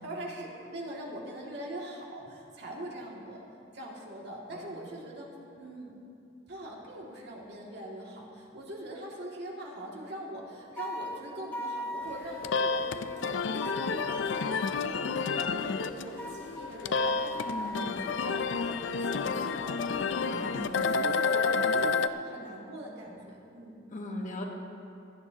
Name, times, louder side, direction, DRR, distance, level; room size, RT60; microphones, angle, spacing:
voice 1, 0.0-3.4 3.7-5.3 5.6-5.9 6.5-23.7, right 1 dB, 60° right, -3 dB, 2.2 m, -42 dB
voice 2, 4.5-5.0 17.3-18.0 20.2-21.0 23.9-24.4, left 1 dB, 45° left, 1 dB, 1.2 m, -40 dB
sound 1, 10.8-12.9 13.6-14.9 16.2-18.3, equal, 10° left, 1.9 m, -39 dB
sound 2, 12.1-22.1, left 5 dB, 80° left, 0.4 m, -30 dB
25.5 x 9.5 x 2.9 m, 2.6 s
head